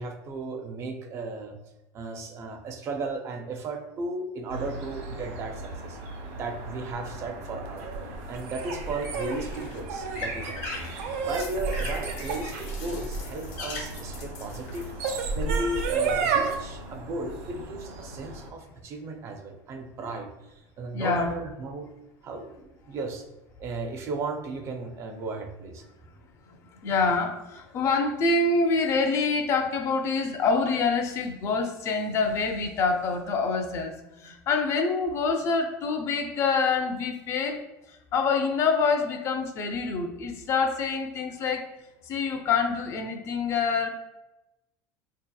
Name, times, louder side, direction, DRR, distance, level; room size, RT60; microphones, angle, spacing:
voice 1, 0.0-1.6 1.9-6.0 6.3-7.9 8.3-10.9 11.2-14.9 15.3-21.9 22.2-23.3 23.6-25.8, right 3 dB, 35° right, 5 dB, 0.4 m, -35 dB
sound 1, 4.5-18.5, right 1 dB, 70° right, 0.8 m, -40 dB
sound 2, 7.8-14.0 14.7-16.5, right 5 dB, 90° right, 0.5 m, -30 dB
sound 3, 8.9-15.1, left 3 dB, 80° left, 0.8 m, -41 dB
voice 2, 20.9-21.3 26.8-37.6 38.1-41.7 42.1-43.9, left 4 dB, 35° left, 5 dB, 0.4 m, -26 dB
4.4 x 2.7 x 2.2 m, 0.96 s
cardioid pair, 155°, 8 cm